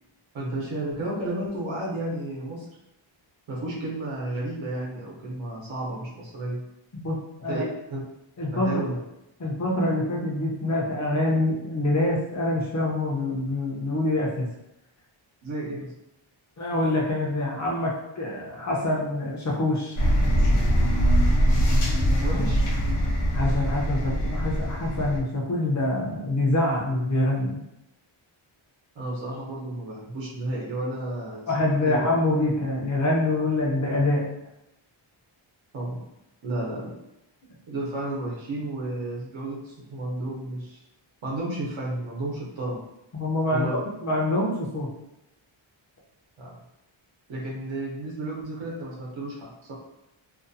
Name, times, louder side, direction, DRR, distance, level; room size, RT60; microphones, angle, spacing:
voice 1, 0.3-2.7 3.5-6.6 7.5-7.6 7.9-8.0 8.5-9.0 15.4-15.9 22.0-22.6 28.9-31.4 31.9-32.0 35.7-36.0 36.4-36.9 37.7-40.8 41.2-42.8 43.5-43.8 46.4-46.6 47.3-49.7, right 1 dB, 70° right, -4 dB, 0.8 m, -32 dB
voice 2, 6.9-7.7 8.4-8.8 9.4-14.5 16.6-20.1 23.3-27.6 31.5-34.3 43.1-44.9, left 1 dB, 35° left, -2 dB, 0.5 m, -25 dB
sound 1, 20.0-25.2, equal, 90° left, 0.7 m, -22 dB
2.5 x 2.3 x 2.6 m, 0.85 s
wide cardioid pair, 165°, 48 cm